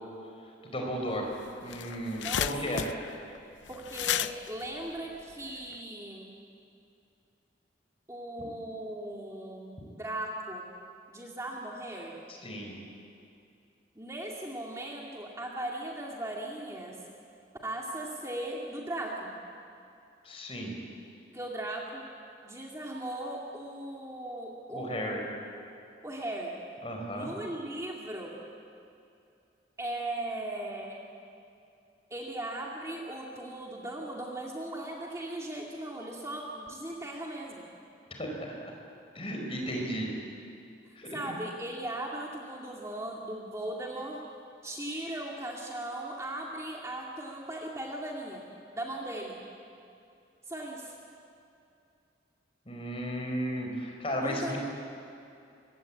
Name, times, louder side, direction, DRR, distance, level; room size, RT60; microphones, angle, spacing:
voice 1, 0.6-1.3 1.6-2.8 12.4-12.7 20.2-20.7 24.7-25.2 26.8-27.3 38.1-38.7 39.1-40.1 40.9-41.3 52.7-54.6, equal, 30° left, 1 dB, 4.8 m, -34 dB
sound 1, 1.2-1.3 1.5-5.8, left 10 dB, 75° left, 0.6 m, -34 dB
voice 2, 2.2-3.0 3.7-6.3 8.1-10.7 11.1-12.2 14.0-17.0 17.6-19.3 21.3-22.1 22.4-25.4 26.0-26.5 27.1-28.4 29.8-31.1 32.1-37.7 41.1-44.2 44.6-48.4 48.7-49.4 50.5-51.0 54.2-54.6, right 1 dB, 15° right, -2 dB, 2.4 m, -38 dB
25.5 x 22.5 x 8.6 m, 2.6 s
head